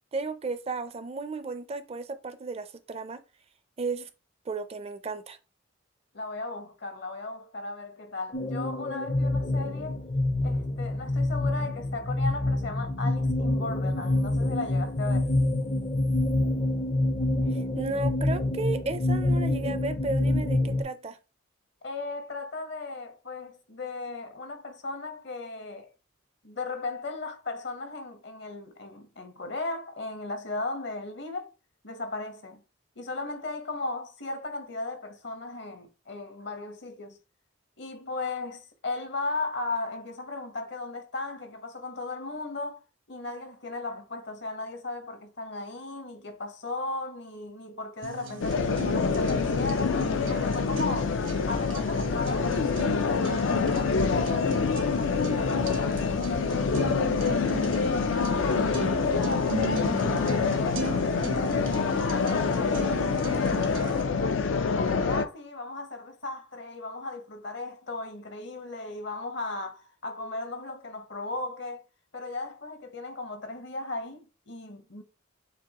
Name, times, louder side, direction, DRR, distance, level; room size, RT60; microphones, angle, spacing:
voice 1, 0.1-3.2 3.8-4.1 4.5-5.4 17.4-21.2, right 3 dB, 30° right, 0.4 m, -34 dB
voice 2, 6.1-10.0 10.4-15.3 21.8-25.9 26.4-31.5 31.8-32.6 33.0-37.2 37.8-51.2 51.5-56.1 57.3-58.0 58.4-64.4 64.7-71.8 72.1-75.0, left 3 dB, 65° left, 0.9 m, -36 dB
sound 1, 8.3-20.8, left 1 dB, 35° left, 0.5 m, -27 dB
sound 2, 48.0-64.0, right 2 dB, 75° right, 1.0 m, -38 dB
sound 3, 48.4-65.3, left 5 dB, 85° left, 0.5 m, -26 dB
6.9 x 2.6 x 2.9 m
head